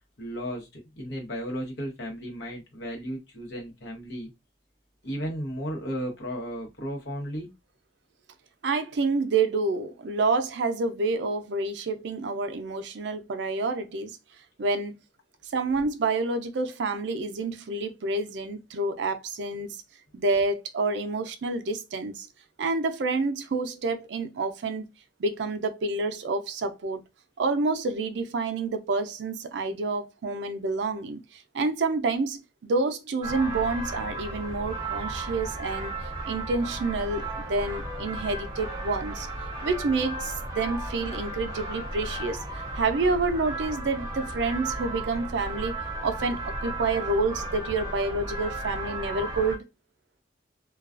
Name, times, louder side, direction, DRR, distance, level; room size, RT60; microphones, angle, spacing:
voice 1, 0.2-4.3 5.0-7.5, equal, 80° left, 0.9 m, -34 dB
voice 2, 8.6-14.2 14.6-14.9 15.5-19.8 20.1-22.3 22.6-24.9 25.2-27.0 27.4-36.0 36.2-39.3 39.6-42.4 42.7-45.8 46.0-49.6, right 3 dB, 75° right, 0.4 m, -28 dB
sound 1, 33.2-49.6, right 1 dB, 20° right, 0.6 m, -35 dB
2.3 x 2.2 x 2.4 m
head